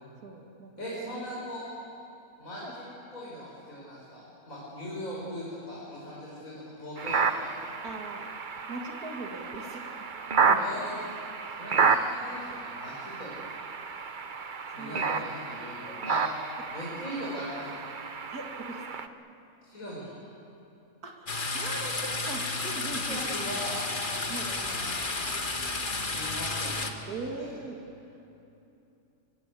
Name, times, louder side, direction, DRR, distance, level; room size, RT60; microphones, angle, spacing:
voice 1, 0.2-1.2 2.6-2.7 7.8-8.3 8.7-10.0 10.5-10.8 11.7-11.9 14.7-15.4 18.3-19.1 21.0-23.3 24.3-24.5 27.1-27.8, right 3 dB, 80° right, 2 dB, 2.6 m, -41 dB
voice 2, 0.8-1.6 2.4-2.9 3.1-7.6 10.5-10.9 11.5-13.3 14.7-16.2 16.7-17.8 19.6-20.1 22.9-25.7 26.1-27.5, equal, 65° left, -6 dB, 5.5 m, -40 dB
sound 1, 7.0-19.1, right 5 dB, 40° right, 0.8 m, -31 dB
sound 2, 21.3-26.9, left 3 dB, 35° left, 1.6 m, -32 dB
25.0 x 23.5 x 8.4 m, 2.9 s
omnidirectional pair, 1.6 m